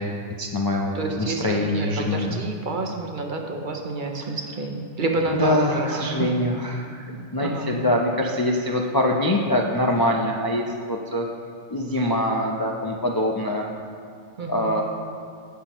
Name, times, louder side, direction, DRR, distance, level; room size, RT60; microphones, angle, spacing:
voice 1, 0.0-2.4 5.4-11.3 11.7-13.7 14.5-14.8, left 1 dB, 30° left, -1 dB, 0.4 m, -24 dB
voice 2, 0.9-6.3 7.4-7.7 14.4-14.7, right 3 dB, 50° right, 3 dB, 0.8 m, -29 dB
16.0 x 5.7 x 3.0 m, 2.2 s
omnidirectional pair, 1.2 m